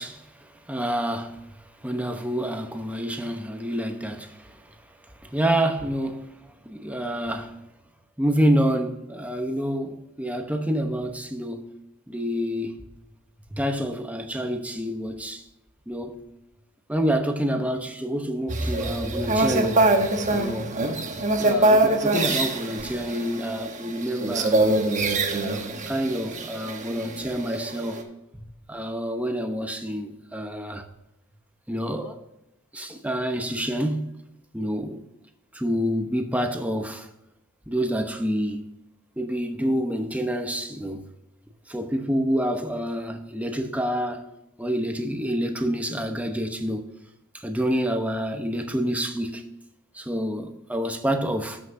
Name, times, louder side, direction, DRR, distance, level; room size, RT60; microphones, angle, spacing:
voice 1, 0.0-7.6 8.2-11.7 12.1-12.8 13.5-15.4 15.9-16.2 16.9-19.8 20.3-21.1 21.4-24.6 25.4-28.0 28.3-30.8 31.7-32.2 32.7-34.1 34.5-35.0 35.5-37.1 37.7-38.7 39.2-41.1 41.7-44.3 44.6-46.9 47.3-49.4 49.9-51.6, equal, 5° right, 0.9 m, -28 dB
sound 1, 18.5-28.0, right 2 dB, 35° right, 1.1 m, -24 dB
14.5 x 5.9 x 2.7 m
head